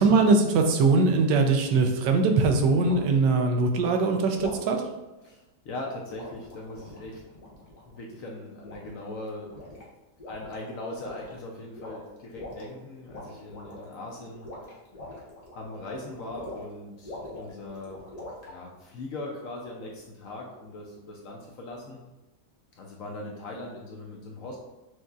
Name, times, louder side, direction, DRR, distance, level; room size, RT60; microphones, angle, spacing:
voice 1, 0.0-4.8, right 3 dB, 85° right, 4 dB, 1.2 m, -21 dB
sound 1, 1.6-1.9 2.8-3.1 4.4-4.7 6.1-8.0 8.6-9.1 9.4-9.8 10.2-10.6 10.9-11.4 11.7-12.6 13.1-13.9 14.3-16.7 17.0-18.5, left 2 dB, 30° left, 0.8 m, -42 dB
voice 2, 5.2-7.2 7.8-9.6 10.2-14.5 15.5-18.0 18.5-22.0 22.8-24.6, left 2 dB, 65° left, -1 dB, 0.8 m, -40 dB
6.2 x 2.7 x 2.3 m, 1.1 s
omnidirectional pair, 1.8 m